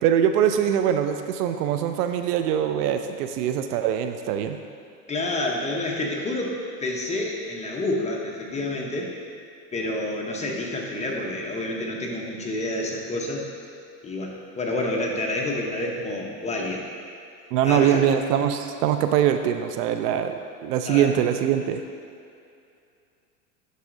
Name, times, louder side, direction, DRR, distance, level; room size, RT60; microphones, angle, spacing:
voice 1, 0.0-4.6 17.5-20.4 20.6-21.8, right 9 dB, 70° right, 7 dB, 0.5 m, -23 dB
voice 2, 5.1-9.1 9.7-13.4 14.0-16.8 17.6-18.0 20.9-21.1, left 2 dB, 15° left, -1 dB, 0.8 m, -28 dB
11.0 x 4.1 x 2.6 m, 2.5 s
hypercardioid pair, 105°, 49 cm